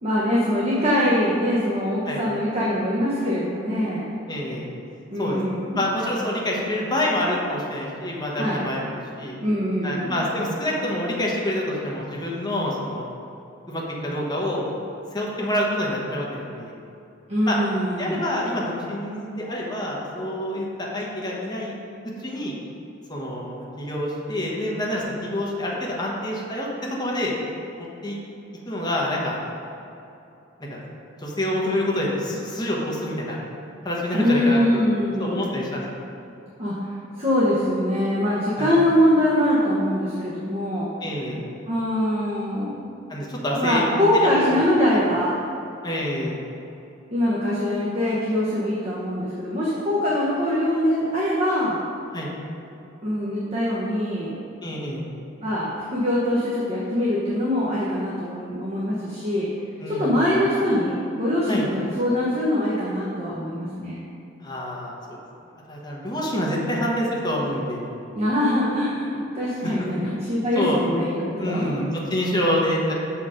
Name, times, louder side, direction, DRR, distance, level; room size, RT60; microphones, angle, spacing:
voice 1, 0.0-4.1 5.1-5.9 8.4-8.6 9.4-10.2 17.3-18.3 34.1-35.5 36.6-36.9 37.1-40.9 41.7-42.9 43.5-45.4 47.1-51.8 53.0-54.3 55.4-59.5 59.9-64.0 68.1-69.1 69.3-71.8, left 1 dB, 35° right, -7 dB, 1.0 m, -23 dB
voice 2, 4.3-4.7 5.2-5.4 5.7-9.4 9.8-13.0 13.7-14.7 15.1-16.7 17.4-17.6 18.0-21.7 22.2-22.5 23.1-26.7 27.0-27.3 28.0-28.2 28.7-29.4 30.7-30.8 31.2-33.4 33.8-34.8 35.1-35.8 38.6-38.8 41.0-41.4 43.1-43.8 44.1-44.5 45.8-46.4 52.1-52.3 54.6-55.0 59.8-60.2 61.5-61.7 64.4-65.2 65.7-67.9 69.6-69.7 70.6-70.8 71.4-72.9, left 1 dB, 20° left, -4 dB, 1.2 m, -27 dB
6.9 x 4.6 x 5.0 m, 2.8 s
head